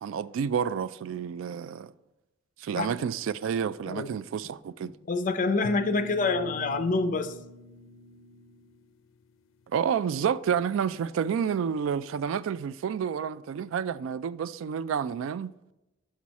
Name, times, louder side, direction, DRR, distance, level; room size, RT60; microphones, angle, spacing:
voice 1, 0.0-1.9 2.6-4.9 9.7-15.5, right 7 dB, 80° right, 0.3 m, -29 dB
voice 2, 5.1-7.3, left 3 dB, 40° left, 0.6 m, -26 dB
sound 1, 5.6-8.8, equal, 90° left, 0.4 m, -43 dB
6.2 x 6.0 x 4.1 m
head